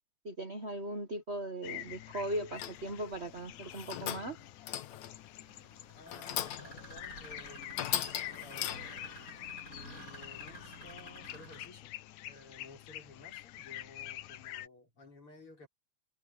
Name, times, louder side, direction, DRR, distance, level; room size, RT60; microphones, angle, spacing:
voice 1, 0.2-4.4, right 1 dB, 75° right, 0.6 m, -38 dB
sound 1, 1.6-14.7, left 14 dB, 90° left, 2.3 m, -47 dB
sound 2, 2.0-11.7, equal, 25° left, 7.8 m, -52 dB
sound 3, 2.6-2.9 3.6-4.4 4.7-5.2 6.1-6.8 7.2-7.3 7.7-9.1, left 11 dB, 75° left, 2.5 m, -38 dB
voice 2, 5.9-8.1 8.4-9.2 9.7-11.9 12.2-15.7, left 2 dB, 45° left, 5.9 m, -55 dB
omnidirectional pair, 3.4 m